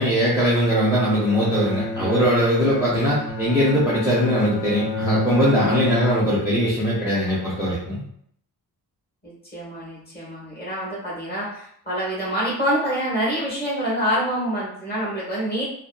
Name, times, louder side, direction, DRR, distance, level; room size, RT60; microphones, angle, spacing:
voice 1, 0.0-8.0, equal, 5° right, -8 dB, 0.5 m, -20 dB
Bowed string instrument, 1.1-6.6, left 3 dB, 65° left, 0.5 m, -30 dB
voice 2, 9.2-15.6, equal, 25° left, -6 dB, 0.9 m, -26 dB
2.6 x 2.1 x 2.2 m, 0.66 s
wide cardioid pair, 170°, 39 cm